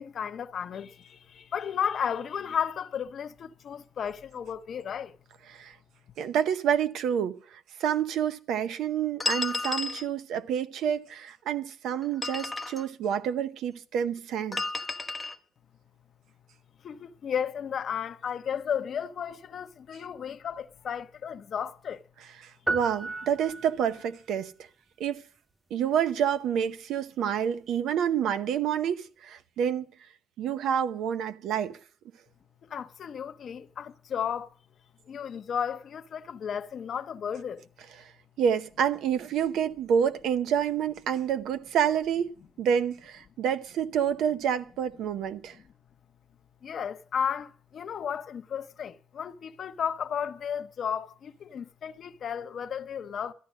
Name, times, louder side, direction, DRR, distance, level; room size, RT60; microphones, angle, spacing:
voice 1, 0.0-5.2 16.8-22.0 23.0-23.3 32.6-34.5 35.1-37.6 45.5-45.6 46.6-53.3, left 8 dB, 60° left, 0.7 m, -34 dB
voice 2, 6.2-7.4 7.8-14.6 22.4-24.5 25.0-25.2 25.7-29.9 30.4-31.7 38.4-42.3 42.6-45.6, right 8 dB, 80° right, 0.8 m, -28 dB
sound 1, 9.2-10.1 12.0-12.8 14.5-15.3, left 3 dB, 20° left, 1.0 m, -32 dB
sound 2, 22.7-24.1, right 3 dB, 10° right, 0.5 m, -33 dB
13.5 x 10.0 x 6.3 m
cardioid pair, 90°, 0 cm